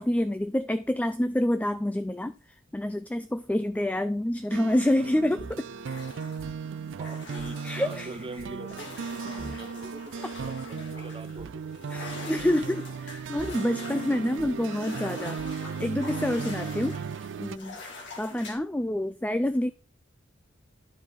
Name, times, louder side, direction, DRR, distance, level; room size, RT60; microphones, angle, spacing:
voice 1, 0.0-2.3 2.7-5.7 7.6-8.1 11.9-15.4 15.8-17.0 17.4-17.8 18.2-19.7, left 1 dB, 5° left, 0.4 m, -27 dB
sound 1, 4.5-17.6, right 6 dB, 65° right, 0.4 m, -36 dB
sound 2, 4.5-15.7, right 3 dB, 80° right, 0.8 m, -47 dB
sound 3, 5.7-18.6, left 3 dB, 65° left, 2.6 m, -45 dB
voice 2, 7.0-11.6 12.1-12.3 18.3-18.6, right 2 dB, 25° right, 0.7 m, -43 dB
12.0 x 4.9 x 4.1 m
head